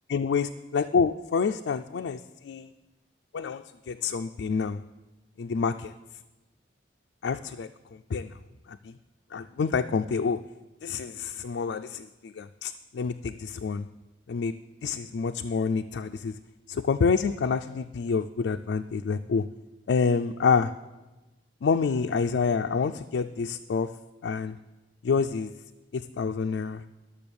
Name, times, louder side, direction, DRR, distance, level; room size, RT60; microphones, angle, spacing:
voice 1, 0.1-2.7 3.3-4.8 5.4-5.9 7.2-7.7 8.1-8.3 8.7-8.9 9.3-10.4 10.8-13.9 14.3-14.5 14.8-16.3 16.7-19.5 19.9-20.7 21.6-23.9 24.2-24.6 25.0-25.5 25.9-26.8, left 5 dB, 85° left, 7 dB, 0.4 m, -27 dB
12.0 x 6.9 x 7.0 m, 1.1 s
head